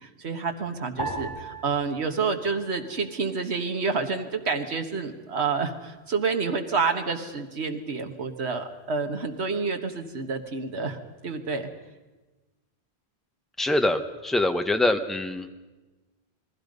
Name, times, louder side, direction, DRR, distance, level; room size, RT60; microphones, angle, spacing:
voice 1, 0.0-11.0 11.2-11.7, right 4 dB, 80° right, 5 dB, 1.8 m, -29 dB
sound 1, 1.0-3.5 3.8-4.7 5.3-5.7, right 2 dB, 25° left, 6.3 m, -39 dB
voice 2, 13.6-15.5, left 1 dB, ahead, 7 dB, 1.2 m, -24 dB
29.0 x 20.5 x 5.4 m, 1.2 s
omnidirectional pair, 1.1 m